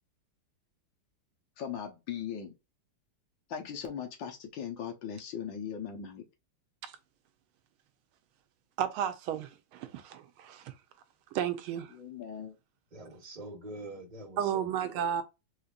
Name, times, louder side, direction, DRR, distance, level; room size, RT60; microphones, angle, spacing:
voice 1, 1.6-2.5 3.5-6.2 11.9-12.6, left 8 dB, 70° left, 1.6 m, -39 dB
voice 2, 8.8-10.7 11.3-11.9 14.4-15.2, right 9 dB, 85° right, 1.5 m, -33 dB
voice 3, 12.9-15.2, right 2 dB, 25° right, 1.3 m, -45 dB
4.9 x 2.7 x 2.4 m
omnidirectional pair, 2.3 m